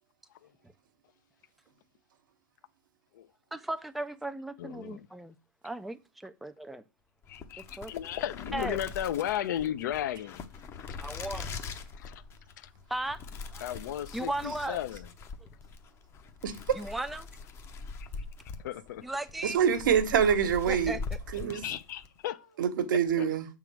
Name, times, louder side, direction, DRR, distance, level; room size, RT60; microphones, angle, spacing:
voice 1, 3.5-5.4 5.6-6.8 7.6-7.9 8.5-8.8 11.0-11.5 12.9-13.2 13.5-13.7 14.1-14.8 15.4-15.5 16.7-17.3 19.0-19.6 20.2-20.3 20.7-21.2, right 1 dB, ahead, 0.4 m, -36 dB
voice 2, 4.6-5.1 7.3-10.5 10.8-10.9 12.0-12.2 12.6-12.7 13.6-15.0 18.6-19.0 21.5-22.5 22.9-23.3, left 11 dB, 65° left, 0.6 m, -35 dB
sound 1, 7.2-22.2, left 4 dB, 25° left, 0.7 m, -42 dB
voice 3, 19.4-21.0 21.3-21.6 22.6-23.5, right 8 dB, 75° right, 1.2 m, -25 dB
6.7 x 3.7 x 6.1 m
hypercardioid pair, 135°, 11 cm